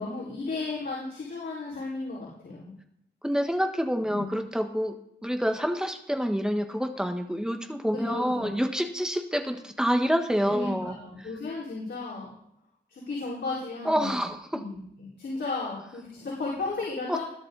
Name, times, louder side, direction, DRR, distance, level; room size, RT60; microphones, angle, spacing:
voice 1, 0.0-2.7 4.1-4.3 7.9-8.6 10.5-12.4 12.9-14.2 14.5-17.2, left 3 dB, 90° left, -8 dB, 4.8 m, -34 dB
voice 2, 3.2-10.9 13.8-14.6 17.1-17.2, equal, 5° right, 5 dB, 1.4 m, -27 dB
21.0 x 11.0 x 4.1 m, 0.74 s
wide cardioid pair, 105°, 18 cm